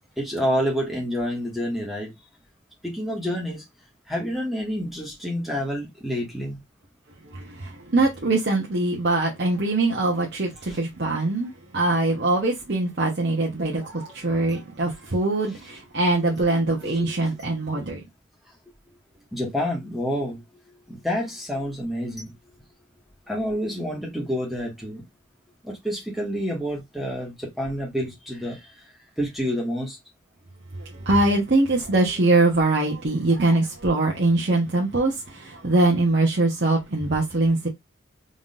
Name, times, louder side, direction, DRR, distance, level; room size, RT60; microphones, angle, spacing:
voice 1, 0.2-2.1 2.8-3.6 4.1-6.6 10.6-10.8 16.8-17.2 19.3-20.4 20.9-22.3 23.3-25.0 25.6-28.7 29.2-30.0, equal, ahead, 1.7 m, -28 dB
voice 2, 7.3-18.0 30.8-37.7, right 2 dB, 60° right, 0.9 m, -22 dB
3.8 x 3.7 x 2.5 m
head